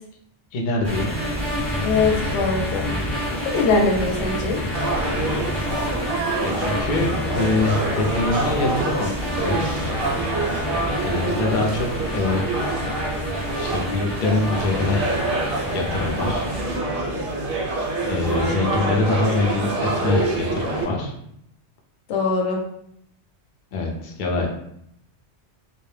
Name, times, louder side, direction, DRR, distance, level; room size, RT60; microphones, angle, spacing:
voice 1, 0.5-1.2 6.4-9.6 11.0-12.4 13.6-15.1 15.7-16.5 18.1-21.1 23.7-24.5, left 2 dB, 60° left, 0 dB, 0.6 m, -24 dB
sound 1, 0.8-16.8, left 1 dB, ahead, 0.6 m, -29 dB
voice 2, 1.8-2.9 3.5-4.6 18.3-19.0 22.1-22.6, left 3 dB, 85° left, 0 dB, 0.9 m, -22 dB
sound 2, 4.7-20.8, right 2 dB, 60° right, 0.7 m, -26 dB
2.2 x 2.0 x 3.1 m, 0.74 s
omnidirectional pair, 1.2 m